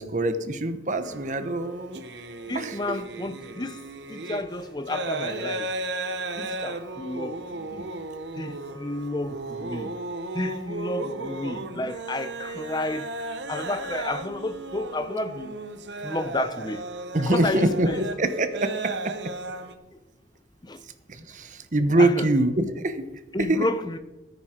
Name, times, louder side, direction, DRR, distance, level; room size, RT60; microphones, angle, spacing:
voice 1, 0.0-2.0 2.5-2.7 17.1-18.7 19.0-19.1 21.1-23.0 23.5-23.6, right 1 dB, 45° right, 1.0 m, -24 dB
sound 1, 1.0-19.7, right 2 dB, 85° right, 1.0 m, -35 dB
voice 2, 2.5-3.8 4.1-5.7 6.4-7.9 8.4-9.9 10.3-15.6 16.0-16.9 17.2-18.0 19.9-20.0 20.6-20.8 22.0-22.3 23.3-24.0, left 2 dB, 25° left, 0.8 m, -31 dB
14.0 x 9.7 x 4.4 m
head